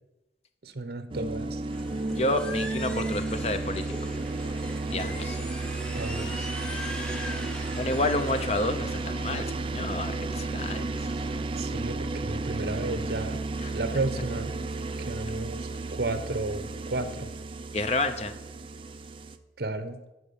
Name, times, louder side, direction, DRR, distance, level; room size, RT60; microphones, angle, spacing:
voice 1, 0.6-1.6 5.9-6.5 11.6-13.4 13.7-14.6 15.0-17.3 19.6-20.0, right 2 dB, 65° right, 10 dB, 0.9 m, -33 dB
sound 1, 1.1-19.4, right 3 dB, 30° right, 0.5 m, -33 dB
sound 2, 1.7-9.0, left 1 dB, 5° left, 0.8 m, -41 dB
voice 2, 2.1-3.8 4.9-5.4 7.8-11.1 13.6-13.7 17.7-18.3, left 2 dB, 35° left, 9 dB, 0.7 m, -29 dB
13.0 x 4.6 x 7.0 m, 1.0 s
head